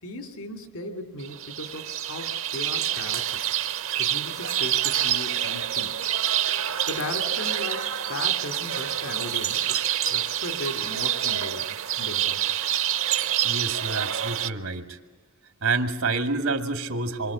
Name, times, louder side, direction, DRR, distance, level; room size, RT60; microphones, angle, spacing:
voice 1, 0.0-3.4 4.0-6.0 6.9-9.8 10.1-12.6, left 2 dB, 80° left, 6 dB, 2.8 m, -37 dB
sound 1, 1.2-14.5, right 11 dB, 70° right, 0.8 m, -27 dB
voice 2, 13.4-15.0 15.6-17.3, right 3 dB, 90° right, 6 dB, 2.1 m, -28 dB
27.5 x 24.5 x 8.5 m, 1.3 s
head